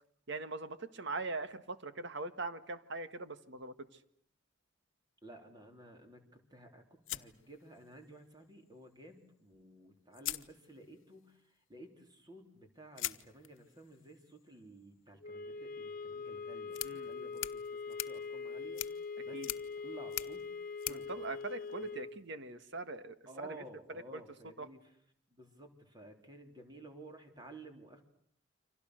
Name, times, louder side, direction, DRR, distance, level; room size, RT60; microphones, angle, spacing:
voice 1, 0.3-3.7 16.8-17.1 19.3-19.5 20.9-23.5 24.1-24.2 24.6-24.7, right 3 dB, 60° right, 10 dB, 1.6 m, -41 dB
voice 2, 5.2-11.4 11.7-19.4 19.8-20.5 20.8-21.1 21.8-22.0 23.3-24.8 25.3-28.0, right 2 dB, 20° right, 4 dB, 4.0 m, -54 dB
sound 1, 7.1-8.2 9.5-9.6 10.1-11.1 13.0-22.2, left 14 dB, 75° left, 1.1 m, -45 dB
sound 2, 15.2-22.2, left 4 dB, 45° left, 1.4 m, -43 dB
29.0 x 26.0 x 6.5 m, 0.64 s
head